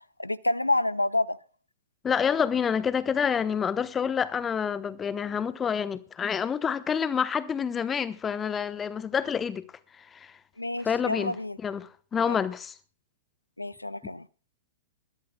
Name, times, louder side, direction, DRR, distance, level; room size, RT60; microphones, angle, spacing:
voice 1, 0.2-1.4 10.6-11.6 12.3-12.4 13.6-14.3, left 2 dB, 85° left, 0.6 m, -28 dB
voice 2, 2.0-9.7 10.0-10.3 10.8-11.4 11.6-12.7, left 7 dB, 20° left, 1.1 m, -28 dB
21.5 x 13.5 x 2.3 m
figure-of-eight pair, 105°, 0 cm